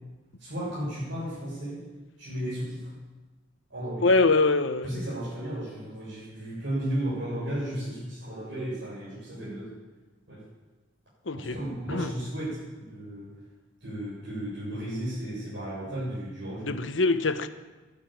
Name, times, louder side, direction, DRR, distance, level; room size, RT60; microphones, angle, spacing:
voice 1, 0.4-1.8 2.2-2.9 3.7-4.1 4.8-9.7 10.3-10.4 11.3-12.6 12.9-13.4 13.8-16.8, right 1 dB, 65° right, 7.5 m, -34 dB
voice 2, 4.0-4.9 11.3-11.5 11.9-12.1 16.6-17.5, left 3 dB, 75° left, 1.0 m, -23 dB
13.0 x 11.5 x 9.2 m
head